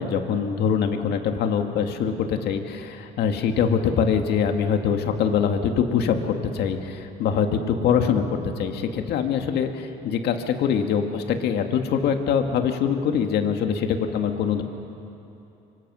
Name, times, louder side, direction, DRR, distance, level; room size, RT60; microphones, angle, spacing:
voice 1, 0.0-14.6, left 7 dB, 75° left, 5 dB, 1.9 m, -23 dB
24.5 x 24.5 x 6.3 m, 2.9 s
cardioid pair, 110°, 17 cm